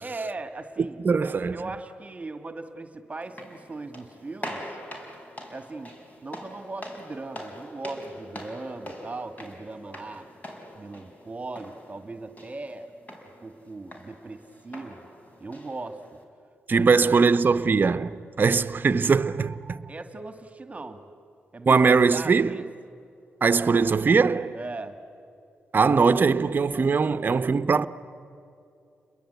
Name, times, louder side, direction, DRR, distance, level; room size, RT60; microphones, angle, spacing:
voice 1, 0.0-1.0 1.5-4.8 5.5-5.9 6.2-10.3 10.7-12.9 13.4-15.1 15.4-16.0 16.7-17.3 19.9-21.1 21.5-22.7 24.5-25.0, right 3 dB, 30° right, 1.9 m, -38 dB
voice 2, 1.0-1.6 16.7-19.9 21.7-22.6 23.4-24.6 25.7-27.9, right 5 dB, 45° right, 0.9 m, -21 dB
sound 1, 3.2-16.2, left 1 dB, 35° left, 4.8 m, -43 dB
30.0 x 22.0 x 8.2 m
cardioid pair, 65°, 4 cm